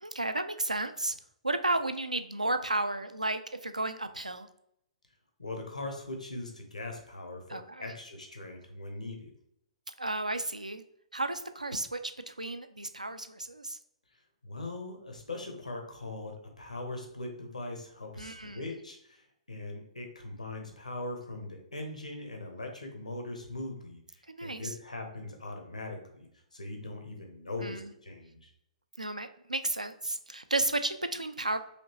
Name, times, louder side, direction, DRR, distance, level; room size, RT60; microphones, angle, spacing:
voice 1, 0.0-1.2 1.4-4.5 7.5-7.9 9.9-10.8 11.1-13.8 18.2-18.7 24.3-24.8 27.6-27.9 29.0-31.6, right 2 dB, 85° right, 10 dB, 0.4 m, -33 dB
voice 2, 5.4-9.3 14.4-26.3 26.5-28.5, left 2 dB, 80° left, 3 dB, 1.1 m, -41 dB
5.0 x 2.9 x 2.9 m, 0.73 s
figure-of-eight pair, 115°, 4 cm